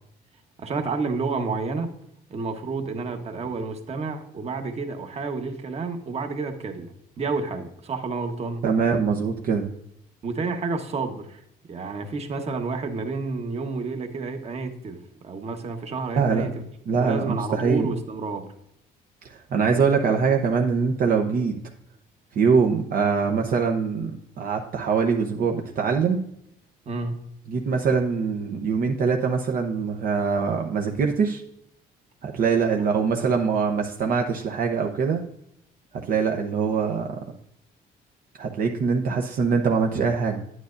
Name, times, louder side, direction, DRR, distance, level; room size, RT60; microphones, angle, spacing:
voice 1, 0.6-1.9 2.3-6.9 7.2-8.6 10.2-11.4 11.7-16.6 17.0-18.4 26.9-27.2 32.8-32.9, right 4 dB, 40° right, 6 dB, 1.3 m, -30 dB
voice 2, 8.6-9.7 16.2-16.5 16.9-17.9 19.2-21.6 22.3-24.1 24.4-26.2 27.5-31.4 32.2-35.2 36.1-37.1 38.4-40.4, right 5 dB, 60° right, 2 dB, 0.9 m, -23 dB
9.6 x 9.4 x 2.6 m, 0.74 s
cardioid pair, 110°, 17 cm